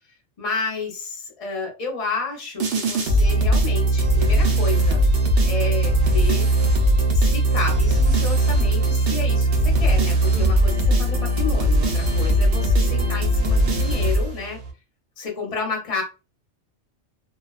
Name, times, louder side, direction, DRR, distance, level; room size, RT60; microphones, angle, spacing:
voice 1, 0.4-5.0 5.4-6.5 7.1-14.6 15.2-16.0, left 4 dB, 35° left, 0 dB, 0.7 m, -31 dB
sound 1, 2.6-14.7, right 1 dB, 60° right, 0.8 m, -19 dB
2.3 x 2.3 x 2.3 m, 0.31 s
omnidirectional pair, 1.2 m